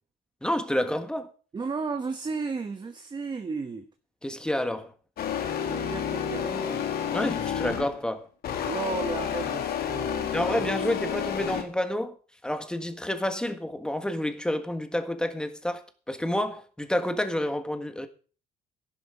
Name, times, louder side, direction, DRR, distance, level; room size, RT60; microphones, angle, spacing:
voice 1, 0.4-1.3 4.2-4.9 7.1-8.3 10.3-12.2 12.4-18.1, left 1 dB, 5° left, 1.6 m, -29 dB
voice 2, 1.5-3.9 5.6-6.9 8.7-10.7, right 4 dB, 25° right, 1.1 m, -34 dB
sound 1, 5.2-8.0 8.4-11.6, left 8 dB, 65° left, 2.2 m, -30 dB
12.0 x 11.5 x 5.0 m
cardioid pair, 110°, 17 cm